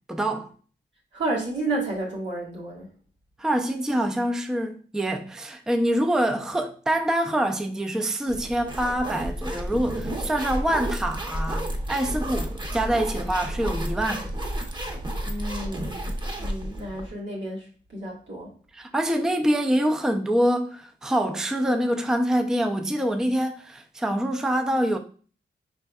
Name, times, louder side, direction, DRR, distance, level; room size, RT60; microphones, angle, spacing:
voice 1, 0.1-0.5 3.4-14.3 18.7-25.0, right 1 dB, 5° right, 0.4 m, -25 dB
voice 2, 1.1-2.9 15.2-18.5, right 2 dB, 85° right, 1.7 m, -31 dB
sound 1, 8.3-17.1, right 1 dB, 25° right, 0.8 m, -31 dB
5.0 x 3.5 x 2.3 m
wide cardioid pair, 100°, 19 cm